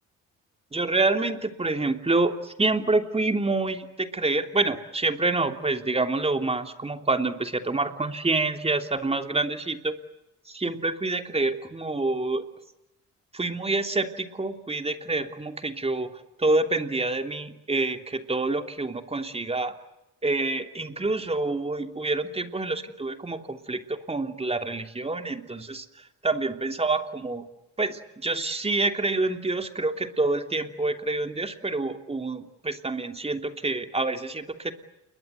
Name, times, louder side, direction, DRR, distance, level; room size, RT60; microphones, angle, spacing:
voice 1, 0.7-9.9 10.5-12.4 13.3-16.1 16.4-19.7 20.2-25.8 26.2-27.4 27.8-34.7, right 2 dB, 20° right, 6 dB, 3.1 m, -27 dB
29.5 x 22.0 x 8.2 m, 0.93 s
cardioid pair, 90°, 30 cm